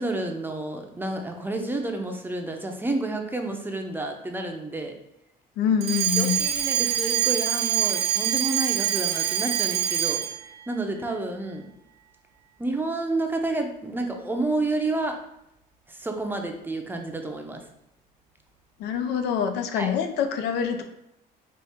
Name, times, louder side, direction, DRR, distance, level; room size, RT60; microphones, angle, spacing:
voice 1, 0.0-5.0 6.2-10.2 10.7-11.7 12.6-15.2 15.9-17.6 19.8-19.9, right 2 dB, 10° right, 4 dB, 0.5 m, -30 dB
voice 2, 5.6-6.4 18.8-20.8, left 8 dB, 85° left, 7 dB, 0.5 m, -25 dB
Alarm, 5.8-10.4, right 10 dB, 65° right, 0.5 m, -25 dB
4.2 x 2.5 x 3.5 m, 0.80 s
cardioid pair, 110°, 17 cm